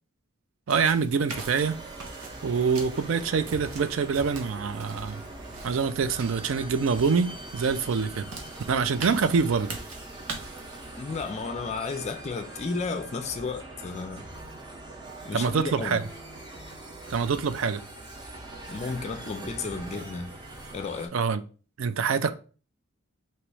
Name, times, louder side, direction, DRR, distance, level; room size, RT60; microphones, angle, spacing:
voice 1, 0.7-1.8 2.4-5.2 5.6-8.3 8.7-9.8 15.3-16.0 17.1-17.8 21.1-21.4 21.8-22.3, right 5 dB, 65° right, 0.4 m, -25 dB
sound 1, 0.7-10.9, right 3 dB, 85° right, 0.9 m, -43 dB
sound 2, 1.3-21.1, right 2 dB, 20° right, 0.7 m, -42 dB
voice 2, 11.0-14.3 15.2-16.0 18.7-20.4 20.7-21.1, left 4 dB, 30° left, 0.3 m, -33 dB
3.1 x 3.0 x 4.6 m
head